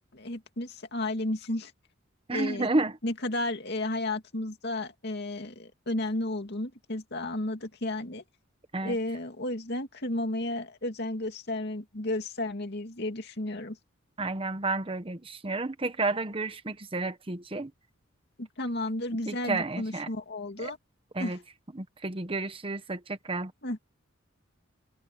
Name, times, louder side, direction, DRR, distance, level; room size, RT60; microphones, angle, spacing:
voice 1, 0.0-1.7 2.3-2.7 3.0-8.2 8.8-13.8 18.4-20.8 21.2-21.4 23.6-23.8, left 1 dB, 55° left, 2.4 m, -33 dB
voice 2, 2.3-3.0 8.7-9.0 14.2-17.7 19.3-20.1 20.6-20.7 21.1-21.4 21.7-23.5, right 2 dB, 30° right, 1.0 m, -31 dB
head